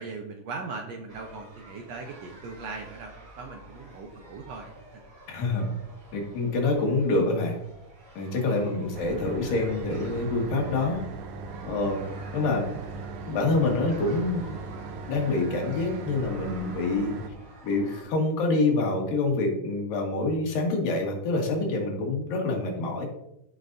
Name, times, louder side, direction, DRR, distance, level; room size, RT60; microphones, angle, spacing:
voice 1, 0.0-4.7 8.6-8.8, right 4 dB, 70° right, 2 dB, 1.6 m, -39 dB
sound 1, 1.1-18.0, right 1 dB, 45° right, 3.7 m, -49 dB
voice 2, 5.3-5.7 6.1-7.6 8.2-11.0 11.6-12.0 12.3-12.7 13.3-14.6 15.1-17.2 17.6-23.1, left 2 dB, 85° left, 1 dB, 3.4 m, -26 dB
sound 2, 8.9-17.3, right 3 dB, 90° right, 2.3 m, -39 dB
14.5 x 5.8 x 2.6 m, 0.84 s
omnidirectional pair, 3.8 m